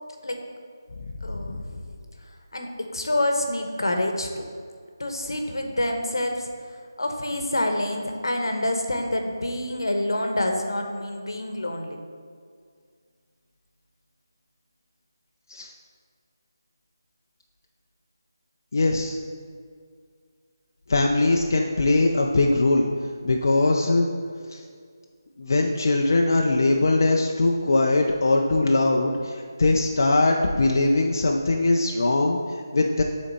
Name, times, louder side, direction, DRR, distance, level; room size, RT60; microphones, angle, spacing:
voice 1, 1.2-1.7 2.5-4.5 5.0-6.4 7.0-12.0, left 1 dB, 85° left, 3 dB, 1.0 m, -27 dB
voice 2, 18.7-19.2 20.9-22.9 23.2-24.1 24.5-24.6 25.4-33.0, left 2 dB, 55° left, 0 dB, 0.5 m, -21 dB
8.9 x 4.1 x 4.1 m, 2.1 s
figure-of-eight pair, 165°, 2 cm